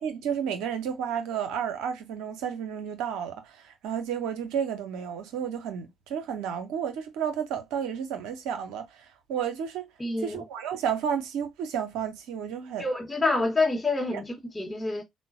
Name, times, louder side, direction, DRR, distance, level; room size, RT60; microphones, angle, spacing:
voice 1, 0.0-9.9 10.2-12.8 14.1-14.2, right 8 dB, 70° right, 0.6 m, -32 dB
voice 2, 10.0-10.4 12.8-15.0, left 2 dB, 15° left, 0.9 m, -27 dB
3.7 x 2.1 x 2.5 m
figure-of-eight pair, 45°, 0 cm